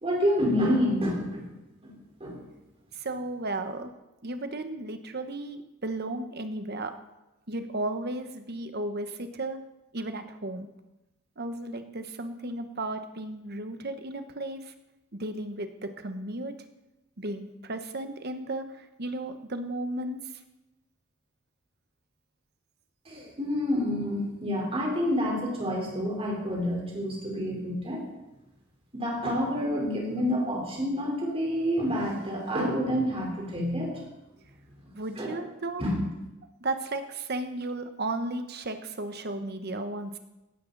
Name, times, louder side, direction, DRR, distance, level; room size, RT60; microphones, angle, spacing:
voice 1, 0.0-1.5 1.8-2.4 23.1-28.1 28.9-34.0 35.2-35.4 35.8-35.9, equal, 30° right, -1 dB, 4.2 m, -28 dB
voice 2, 2.9-3.9 4.2-6.9 7.5-9.6 9.9-10.7 11.4-14.7 15.1-16.5 17.2-20.2 34.9-35.8 36.6-40.2, right 2 dB, 55° right, 8 dB, 1.2 m, -34 dB
16.5 x 13.0 x 4.1 m, 0.98 s
head